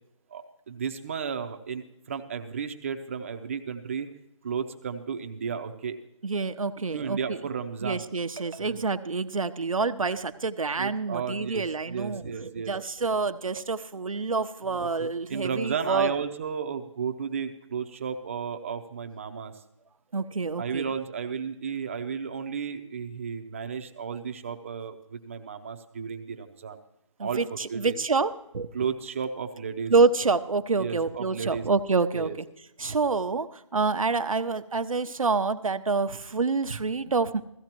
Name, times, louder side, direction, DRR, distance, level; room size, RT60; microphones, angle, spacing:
voice 1, 0.3-4.1 4.4-6.0 6.9-8.1 8.6-8.8 10.8-12.7 14.7-19.5 20.6-26.8 27.2-28.0 28.7-29.9 30.8-31.6 32.1-32.4, right 6 dB, 25° right, 7 dB, 0.7 m, -33 dB
voice 2, 6.2-7.4 7.8-16.1 20.1-20.9 27.2-28.7 29.9-32.5 32.8-37.4, right 4 dB, 85° right, 10 dB, 0.8 m, -27 dB
16.0 x 15.0 x 3.0 m, 0.81 s
figure-of-eight pair, 165°, 17 cm